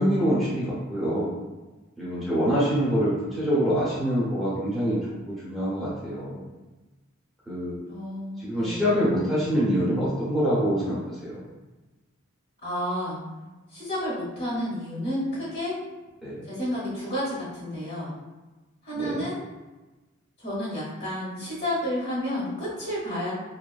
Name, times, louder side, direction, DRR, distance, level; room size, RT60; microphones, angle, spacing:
voice 1, 0.0-1.3 2.0-5.0 5.3-6.5 7.5-7.8 8.4-11.4 16.2-16.5 18.9-19.2, equal, ahead, -11 dB, 0.7 m, -25 dB
voice 2, 7.9-9.0 12.6-13.2 13.7-15.8 16.5-18.1 18.8-19.4 20.4-23.3, equal, 50° left, -6 dB, 1.1 m, -31 dB
2.6 x 2.3 x 2.4 m, 1.1 s
head